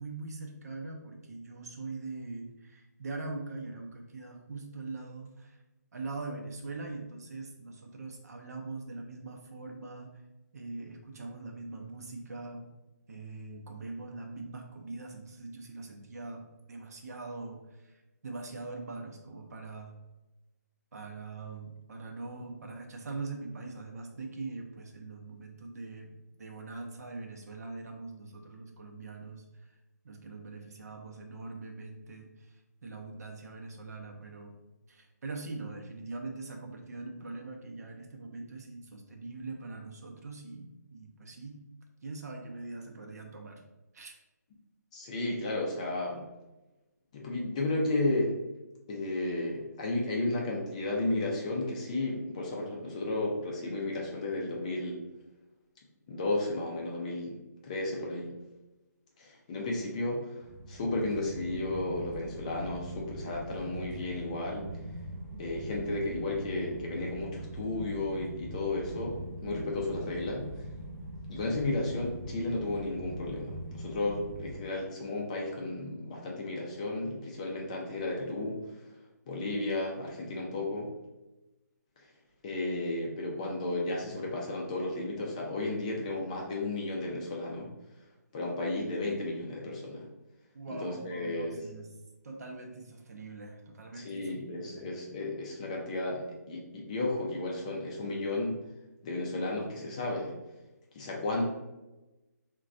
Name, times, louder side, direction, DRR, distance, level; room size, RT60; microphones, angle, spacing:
voice 1, 0.0-5.6 5.9-10.1 10.5-12.7 13.1-17.9 18.2-20.0 20.9-29.7 30.0-34.6 34.9-41.6 42.0-43.6 43.9-44.1 90.5-91.9 92.2-94.9, right 3 dB, 60° right, 2 dB, 0.6 m, -42 dB
voice 2, 44.9-46.2 47.1-48.3 48.9-55.0 56.1-57.4 57.6-58.3 59.2-60.4 60.7-64.7 65.4-70.5 71.3-78.6 79.3-80.9 82.4-87.7 88.3-90.1 90.8-91.7 94.0-98.6 99.0-100.4 100.9-101.5, left 2 dB, 20° left, -1 dB, 0.4 m, -33 dB
sound 1, 60.4-74.6, right 1 dB, 15° right, 0.8 m, -42 dB
3.8 x 2.2 x 2.5 m, 1.0 s
hypercardioid pair, 160°, 10 cm